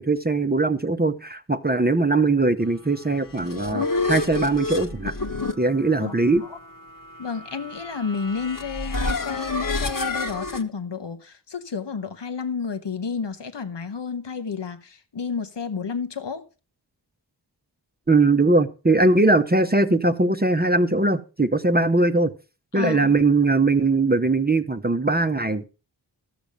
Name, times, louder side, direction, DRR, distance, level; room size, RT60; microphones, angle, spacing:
voice 1, 0.0-5.1 5.6-6.4 18.1-22.3 22.7-25.6, right 2 dB, 25° right, 0.8 m, -20 dB
sound 1, 3.1-10.6, left 3 dB, 50° left, 1.3 m, -29 dB
voice 2, 6.0-6.6 7.2-16.4 22.7-23.1, left 5 dB, 85° left, 1.1 m, -31 dB
13.5 x 7.0 x 5.1 m
wide cardioid pair, 45°, 41 cm